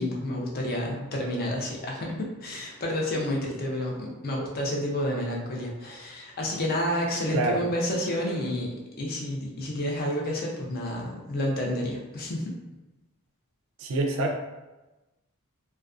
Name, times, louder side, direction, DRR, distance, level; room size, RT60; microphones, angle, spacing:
voice 1, 0.0-8.7 9.0-12.4, left 1 dB, 45° left, -1 dB, 0.5 m, -30 dB
voice 2, 13.8-14.4, right 2 dB, 60° right, 2 dB, 0.4 m, -26 dB
2.4 x 2.2 x 2.3 m, 1.1 s
head